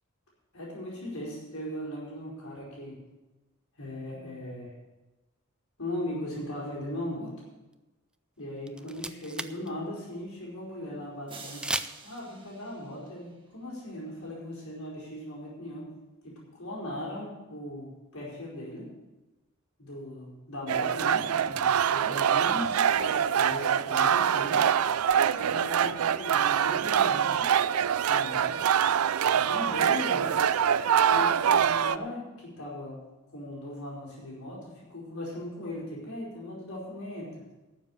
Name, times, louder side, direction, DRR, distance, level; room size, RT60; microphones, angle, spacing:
voice 1, 0.5-3.0 3.8-4.7 5.8-7.3 8.4-11.7 12.0-15.9 16.2-18.9 19.8-24.6 25.3-27.5 28.1-28.6 29.3-30.4 31.1-33.0 33.3-37.4, left 1 dB, 75° left, -5 dB, 4.8 m, -38 dB
sound 1, 8.4-8.5 8.7-9.7 10.0-10.1 11.6-12.2, right 2 dB, 5° right, 0.4 m, -34 dB
sound 2, 11.3-13.6, right 4 dB, 25° right, 1.6 m, -49 dB
sound 3, 20.7-32.0, right 8 dB, 90° right, 0.4 m, -24 dB
12.0 x 7.3 x 8.6 m, 1.1 s
head